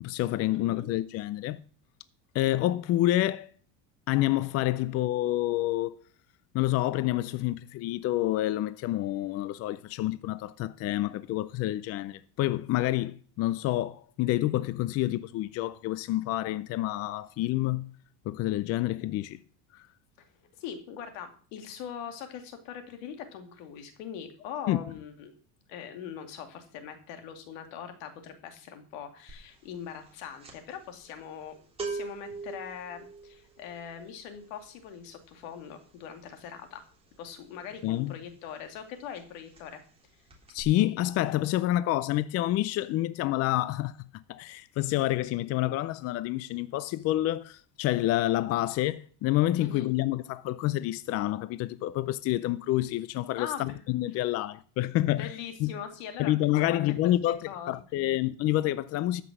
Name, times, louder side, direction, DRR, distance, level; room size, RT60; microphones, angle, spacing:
voice 1, 0.0-1.6 2.3-3.5 4.1-6.0 6.5-17.9 18.3-19.4 24.7-24.8 37.8-38.1 40.5-44.0 44.3-55.3 55.6-55.7 56.2-57.4 57.7-59.2, left 15 dB, 40° left, 0.5 m, -28 dB
voice 2, 0.5-0.9 20.2-25.3 25.7-36.8 37.2-39.8 49.6-49.9 53.4-53.8 54.1-54.3 55.1-57.7, left 8 dB, 80° left, 2.6 m, -42 dB
sound 1, 29.3-29.6 29.8-38.4 38.7-38.9 39.1-40.0 40.3-40.6, right 4 dB, 15° right, 3.1 m, -42 dB
14.0 x 6.1 x 6.1 m
cardioid pair, 145°, 38 cm